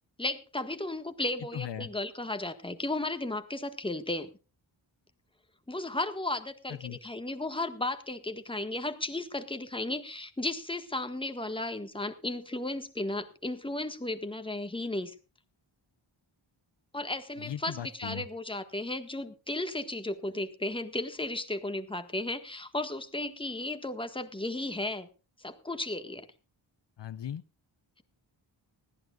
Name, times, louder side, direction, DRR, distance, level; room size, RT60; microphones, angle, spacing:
voice 1, 0.2-4.3 5.7-15.1 16.9-25.1 25.4-26.3, left 2 dB, 10° left, 8 dB, 1.6 m, -34 dB
voice 2, 1.5-1.9 6.7-7.0 17.4-18.3 27.0-27.4, left 10 dB, 60° left, 12 dB, 0.9 m, -38 dB
20.0 x 15.0 x 2.4 m, 0.33 s
wide cardioid pair, 105°, 48 cm